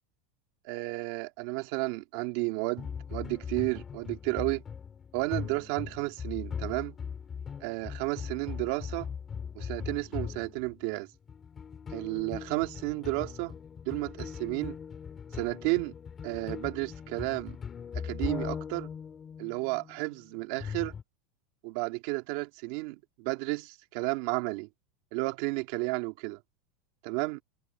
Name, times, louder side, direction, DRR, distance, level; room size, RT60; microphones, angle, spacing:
voice 1, 0.6-4.6 5.1-6.9 7.6-9.1 9.6-11.1 11.9-13.5 13.9-14.8 15.3-15.9 16.2-17.6 17.9-18.9 19.4-20.9 21.6-24.7 25.1-26.4 27.0-27.4, right 23 dB, 50° right, 2.1 m, -32 dB
sound 1, 2.8-11.0 11.3-21.0, left 7 dB, 15° left, 3.7 m, -40 dB
supercardioid pair, 175°, 0 cm